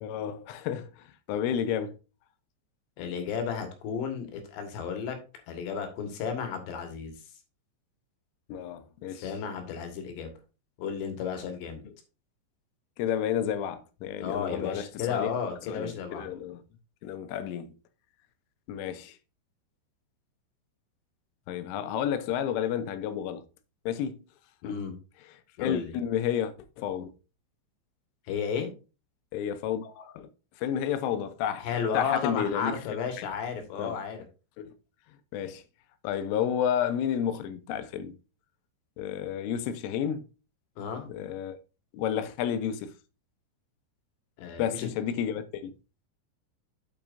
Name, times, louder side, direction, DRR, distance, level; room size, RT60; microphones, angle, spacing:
voice 1, 0.0-2.0 8.5-9.3 11.9-12.0 13.0-15.3 15.7-16.6 17.0-17.7 18.7-19.2 21.5-23.5 23.9-24.2 24.6-24.8 25.6-27.1 29.3-30.3 30.6-32.8 33.2-33.3 33.8-34.0 34.6-34.7 35.3-35.6 36.0-38.2 39.0-40.3 41.1-41.6 41.9-42.9 44.6-45.7, left 9 dB, 85° left, 3.4 m, -31 dB
voice 2, 3.0-5.2 5.5-7.1 9.1-10.3 10.8-11.8 14.2-16.3 24.6-24.9 25.6-25.9 28.3-28.7 31.6-34.2 40.8-41.1 44.4-44.9, left 6 dB, 70° left, 3.7 m, -33 dB
8.7 x 8.4 x 2.6 m
omnidirectional pair, 5.5 m